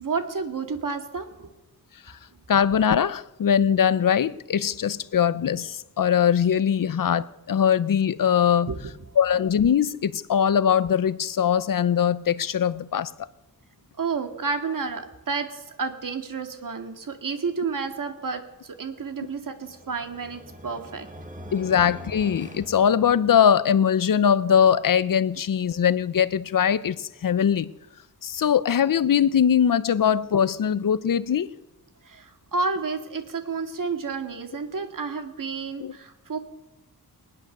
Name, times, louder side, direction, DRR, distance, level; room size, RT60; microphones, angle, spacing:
voice 1, 0.0-1.5 8.7-8.8 14.0-21.1 32.0-36.4, right 4 dB, 60° right, 2.2 m, -30 dB
voice 2, 2.5-8.7 9.2-13.1 21.5-27.7 28.2-31.5 35.8-35.9, left 8 dB, 60° left, 0.7 m, -21 dB
sound 1, 19.2-23.6, equal, 20° right, 1.5 m, -44 dB
20.0 x 19.5 x 6.7 m
wide cardioid pair, 180°, 37 cm